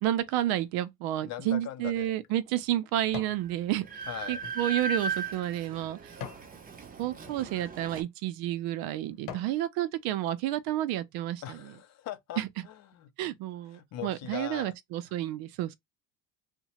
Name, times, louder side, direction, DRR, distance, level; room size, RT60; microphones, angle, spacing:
voice 1, 0.0-3.9 4.3-6.1 7.0-11.6 12.4-12.5 13.2-15.7, right 13 dB, 75° right, 0.6 m, -30 dB
voice 2, 1.2-2.1 4.1-4.4 11.4-13.1 13.7-14.7 15.1-15.3, left 12 dB, 45° left, 0.5 m, -40 dB
sound 1, 1.6-3.5 3.9-6.5 7.1-7.4 8.1-8.2 8.7-9.6 10.1-10.2, left 8 dB, 75° left, 0.8 m, -46 dB
Train, 3.1-3.2 3.5-8.0, right 4 dB, 25° right, 0.6 m, -37 dB
2.8 x 2.2 x 2.8 m
cardioid pair, 130°, 37 cm